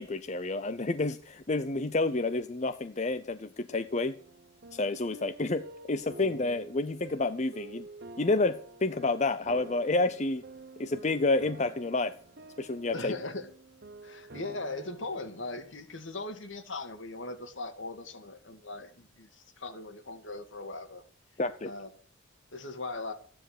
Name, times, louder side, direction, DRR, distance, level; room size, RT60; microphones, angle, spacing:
voice 1, 0.0-4.2 4.7-7.9 8.2-10.4 10.8-12.2 12.6-13.1 21.4-21.7, left 2 dB, 35° left, 11 dB, 0.6 m, -29 dB
sound 1, 3.9-16.1, right 2 dB, 50° right, 0.9 m, -49 dB
voice 2, 6.2-6.6 12.9-13.5 14.0-21.0 21.6-21.9 22.5-23.1, left 2 dB, 65° left, 8 dB, 2.1 m, -39 dB
15.0 x 10.0 x 6.7 m, 0.43 s
head